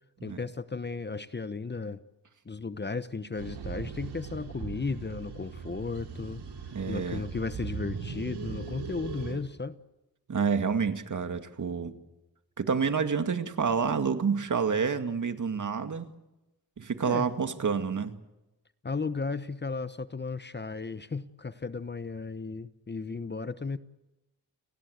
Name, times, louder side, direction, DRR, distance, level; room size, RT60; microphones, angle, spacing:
voice 1, 0.2-2.0 2.4-6.4 6.9-9.8 17.1-17.3 18.8-23.8, left 4 dB, 25° left, 13 dB, 1.1 m, -35 dB
sound 1, 3.4-9.3, right 5 dB, 85° right, 6.0 m, -39 dB
voice 2, 6.7-7.2 10.3-11.9 12.6-16.1 16.8-18.1, right 5 dB, 50° right, 8 dB, 2.3 m, -28 dB
29.5 x 20.0 x 8.1 m, 0.98 s
cardioid pair, 90°, 39 cm